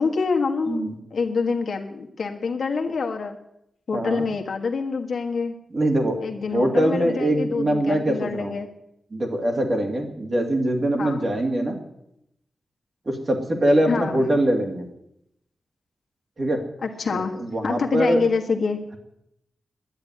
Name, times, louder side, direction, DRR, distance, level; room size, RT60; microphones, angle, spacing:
voice 1, 0.0-0.8 1.1-3.4 3.9-5.5 6.2-8.7 11.0-11.2 13.9-14.2 16.8-17.4 17.6-18.8, left 4 dB, 60° left, 3 dB, 1.6 m, -26 dB
voice 2, 3.9-4.2 5.7-6.2 6.5-8.5 9.1-11.8 13.1-14.9 16.4-16.6 17.1-18.2, right 1 dB, 35° right, 3 dB, 2.3 m, -23 dB
10.5 x 10.0 x 9.7 m, 0.80 s
wide cardioid pair, 165°, 0 cm